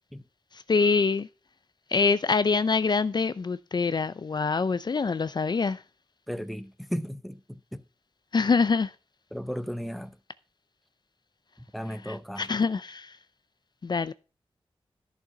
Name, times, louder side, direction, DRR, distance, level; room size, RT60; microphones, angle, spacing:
voice 1, 0.5-1.3 1.9-5.8 8.3-8.9 12.1-13.2 13.8-14.1, left 4 dB, 50° left, 0.5 m, -25 dB
voice 2, 6.3-7.8 9.3-10.2 11.7-12.5, equal, ahead, 0.8 m, -35 dB
11.0 x 6.7 x 5.9 m
wide cardioid pair, 75°, 10 cm